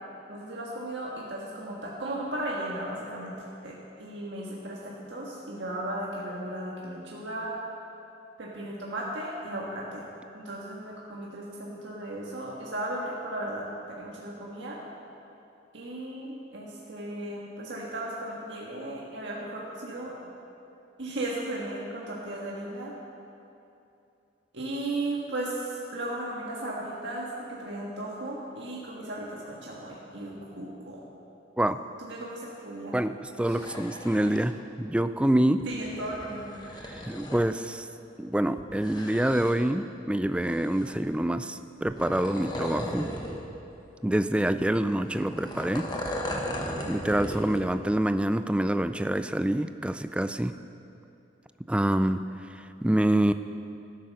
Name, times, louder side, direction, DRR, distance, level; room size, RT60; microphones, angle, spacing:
voice 1, 0.3-3.3 3.6-7.5 8.4-10.1 10.3-14.8 15.7-20.1 21.0-22.9 24.5-31.0 32.0-33.0 33.5-33.6 35.7-36.5 44.1-44.3, right 1 dB, 80° right, -4 dB, 1.6 m, -36 dB
voice 2, 32.9-35.6 36.8-37.9 38.2-43.1 44.0-45.9 46.9-50.6 51.7-53.3, right 1 dB, 5° right, 11 dB, 0.3 m, -26 dB
sound 1, 33.3-34.4 35.6-37.5 38.6-39.8 40.2-41.1 41.9-43.4 43.7-43.8 44.6-47.7 48.0-48.1, equal, 25° left, 1.2 m, -37 dB
12.5 x 10.0 x 6.4 m, 2.7 s
head